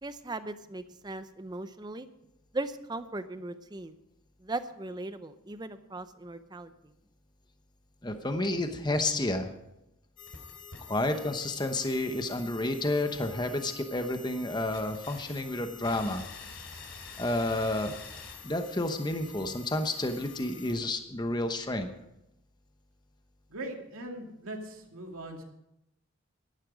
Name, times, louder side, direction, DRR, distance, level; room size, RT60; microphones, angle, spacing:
voice 1, 0.0-2.1 2.5-3.9 4.4-6.7, right 2 dB, 20° right, 12 dB, 0.6 m, -38 dB
voice 2, 8.0-9.5 10.9-16.2 17.2-18.0 18.4-21.9, left 1 dB, 20° left, 7 dB, 0.9 m, -30 dB
sound 1, 10.2-20.8, left 6 dB, 60° left, 2.7 m, -47 dB
voice 3, 23.5-25.4, right 1 dB, 90° right, 2 dB, 2.4 m, -40 dB
13.0 x 12.0 x 5.1 m, 0.86 s
head